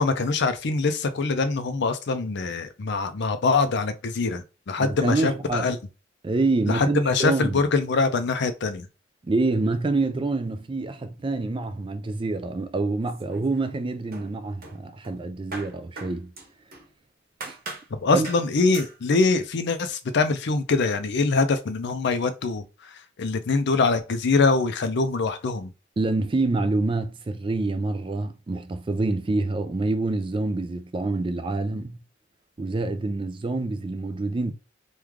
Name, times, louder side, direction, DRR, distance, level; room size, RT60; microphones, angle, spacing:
voice 1, 0.0-5.8 6.7-8.9 17.9-25.7, left 4 dB, 60° left, 0.5 m, -24 dB
voice 2, 4.8-5.7 6.2-7.6 9.2-16.3 17.4-17.6 18.1-18.3 26.0-32.0 32.6-34.5, right 2 dB, 25° right, 0.4 m, -26 dB
sound 1, 13.0-13.8 14.1-16.9 17.4-17.9 18.2-18.5 18.7-19.0, right 3 dB, 50° right, 1.2 m, -40 dB
3.1 x 2.3 x 3.5 m
head